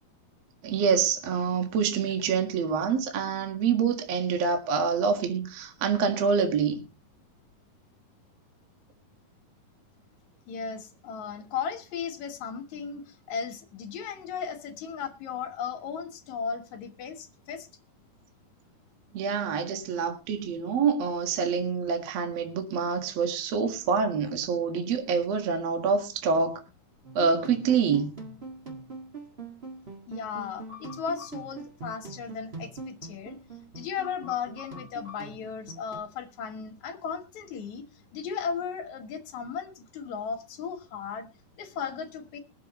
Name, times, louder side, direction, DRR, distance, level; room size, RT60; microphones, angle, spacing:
voice 1, 0.6-6.8 19.1-26.6 27.1-28.2, right 6 dB, 50° right, 2.4 m, -26 dB
voice 2, 10.5-17.7 30.1-33.4 33.7-37.9 38.1-41.3 41.6-42.4, left 6 dB, 60° left, 2.3 m, -36 dB
sound 1, 27.0-36.0, right 2 dB, 30° right, 1.0 m, -43 dB
22.5 x 7.8 x 3.0 m
omnidirectional pair, 4.4 m